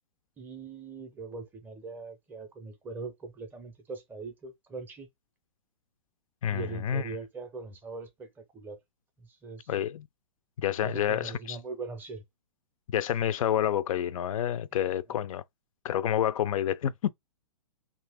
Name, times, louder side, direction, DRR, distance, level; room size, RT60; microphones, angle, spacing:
voice 1, 0.4-5.1 6.5-8.3 8.5-8.8 9.2-9.7 10.8-12.2, right 4 dB, 10° right, 0.5 m, -41 dB
voice 2, 6.4-7.1 9.7-10.1 10.6-11.6 12.9-15.4 15.8-17.1, left 10 dB, 65° left, 0.4 m, -28 dB
2.7 x 2.5 x 3.4 m
hypercardioid pair, 150°, 19 cm